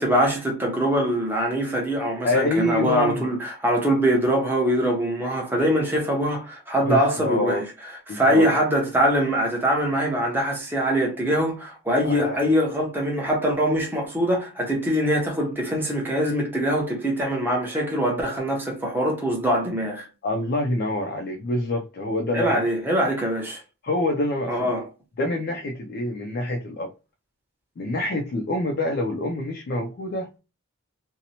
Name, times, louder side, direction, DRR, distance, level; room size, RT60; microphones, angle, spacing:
voice 1, 0.0-7.7 8.1-20.1 22.3-23.6 24.5-24.9, equal, 10° right, 0.7 m, -23 dB
voice 2, 2.2-3.3 6.8-7.6 8.1-8.5 12.0-12.6 20.2-22.6 23.8-24.7 25.2-26.9 27.8-30.3, left 1 dB, 45° left, 0.3 m, -26 dB
2.7 x 2.0 x 2.7 m
head